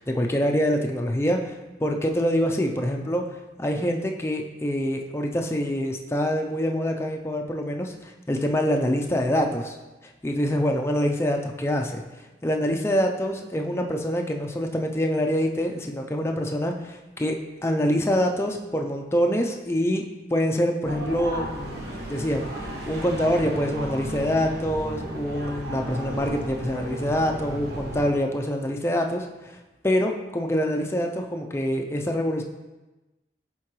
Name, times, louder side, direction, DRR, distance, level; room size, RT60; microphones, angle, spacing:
voice 1, 0.0-3.2 3.6-9.8 10.2-12.0 12.4-17.4 17.6-20.0 20.3-29.6 29.8-32.4, equal, 15° left, 2 dB, 0.4 m, -25 dB
sound 1, 20.8-28.1, right 1 dB, 75° right, 1.3 m, -34 dB
10.5 x 3.7 x 3.1 m, 1.1 s
head